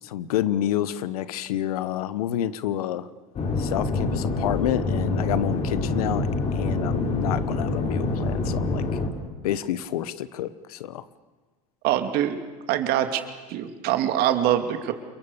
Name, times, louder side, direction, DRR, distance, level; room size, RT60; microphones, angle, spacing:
voice 1, 0.0-3.1 3.6-8.9 9.4-11.0, left 11 dB, 80° left, 16 dB, 1.1 m, -29 dB
sound 1, 3.4-9.1, left 2 dB, 35° left, 4.4 m, -26 dB
voice 2, 11.8-12.4 12.7-13.2 13.5-14.9, right 11 dB, 55° right, 8 dB, 2.6 m, -23 dB
28.5 x 22.5 x 7.1 m, 1.3 s
hypercardioid pair, 90°, 19 cm